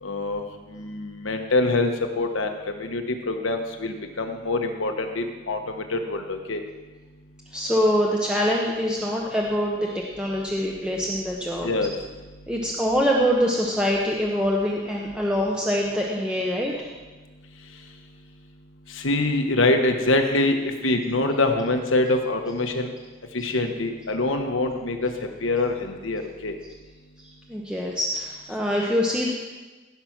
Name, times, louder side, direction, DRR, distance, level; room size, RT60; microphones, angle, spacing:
voice 1, 0.0-0.4 0.7-1.9 2.2-6.6 11.6-11.9 18.9-22.9 23.3-26.5, left 2 dB, 80° left, 5 dB, 1.2 m, -25 dB
voice 2, 7.5-11.7 12.5-16.9 27.2-29.3, equal, 5° right, -3 dB, 0.9 m, -24 dB
16.0 x 5.9 x 6.0 m, 1.3 s
head